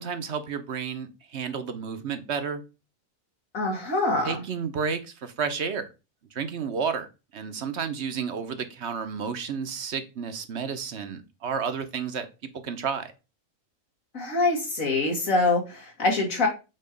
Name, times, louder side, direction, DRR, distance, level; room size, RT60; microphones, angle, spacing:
voice 1, 0.0-2.6 4.2-5.9 6.3-7.1 7.3-12.3 12.6-13.1, right 6 dB, 60° right, 9 dB, 1.1 m, -31 dB
voice 2, 3.5-4.4 14.1-16.5, left 2 dB, 85° left, 1 dB, 2.6 m, -25 dB
7.6 x 3.1 x 5.2 m, 0.29 s
omnidirectional pair, 1.4 m